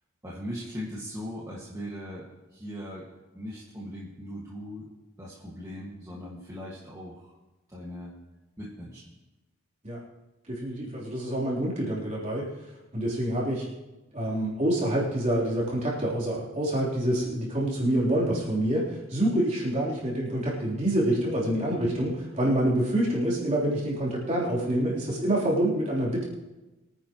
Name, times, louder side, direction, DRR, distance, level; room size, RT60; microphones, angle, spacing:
voice 1, 0.2-3.1 3.3-4.9 5.2-7.3 7.7-8.1 8.6-9.0, equal, 15° right, -6 dB, 1.9 m, -39 dB
voice 2, 10.5-12.5 12.9-13.7 14.1-26.2, right 1 dB, 30° right, -5 dB, 3.7 m, -27 dB
23.5 x 10.0 x 3.1 m, 1.1 s
head